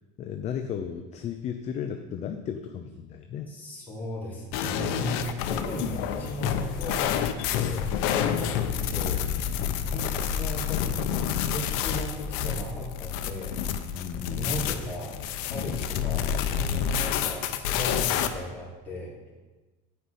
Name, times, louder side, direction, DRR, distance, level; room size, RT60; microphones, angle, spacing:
voice 1, 0.2-3.5 9.6-9.9 13.7-14.7 15.5-15.8 16.4-16.9, left 8 dB, 30° left, 6 dB, 0.6 m, -35 dB
voice 2, 3.5-13.6 14.3-19.3, equal, 10° left, -7 dB, 3.3 m, -37 dB
sound 1, 4.5-18.3, left 9 dB, 70° left, 0.9 m, -28 dB
9.6 x 5.5 x 8.2 m, 1.2 s
cardioid pair, 160°, 21 cm